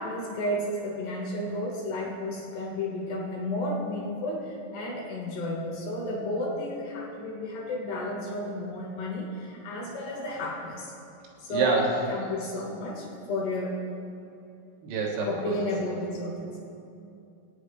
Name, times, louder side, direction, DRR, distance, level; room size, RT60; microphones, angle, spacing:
voice 1, 0.0-10.9 11.4-11.7 12.1-13.8 15.2-16.6, left 1 dB, 65° left, -3 dB, 3.1 m, -32 dB
voice 2, 11.5-12.0 14.8-15.6, right 3 dB, 90° right, -3 dB, 4.4 m, -26 dB
20.0 x 9.5 x 3.2 m, 2.6 s
omnidirectional pair, 5.9 m